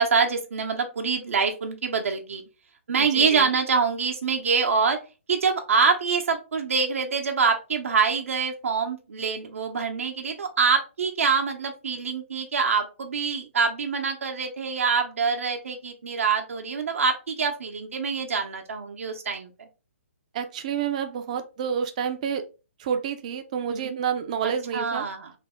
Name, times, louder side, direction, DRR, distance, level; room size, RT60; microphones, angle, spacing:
voice 1, 0.0-2.4 2.9-5.0 5.3-19.5 23.7-24.0 24.4-25.3, right 5 dB, 75° right, 3 dB, 0.8 m, -25 dB
voice 2, 3.0-3.5 20.3-22.4 22.8-25.1, right 7 dB, 30° right, 9 dB, 0.4 m, -29 dB
3.3 x 2.0 x 3.6 m, 0.31 s
hypercardioid pair, 165°, 7 cm